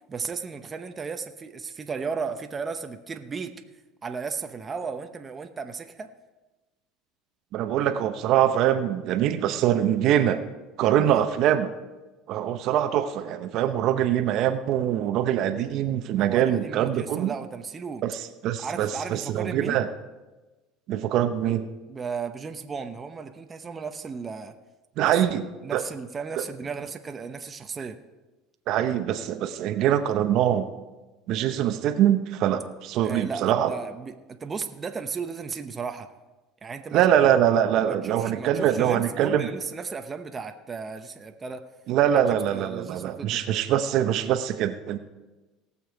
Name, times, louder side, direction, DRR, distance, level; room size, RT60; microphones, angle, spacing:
voice 1, 0.1-3.6 4.0-6.1 11.0-11.2 16.2-18.0 18.6-19.8 21.9-24.6 25.0-25.3 25.6-28.0 33.0-36.1 36.6-37.1 37.9-41.7 42.1-43.4, right 5 dB, 25° right, 6 dB, 0.8 m, -35 dB
voice 2, 7.5-10.4 10.8-11.7 12.3-17.3 18.0-18.1 18.4-19.9 20.9-21.7 25.0-25.4 25.7-25.8 28.7-30.7 31.3-33.7 36.9-39.5 41.9-45.0, right 10 dB, 60° right, 8 dB, 0.8 m, -23 dB
18.5 x 6.9 x 4.6 m, 1.2 s
supercardioid pair, 110°, 0 cm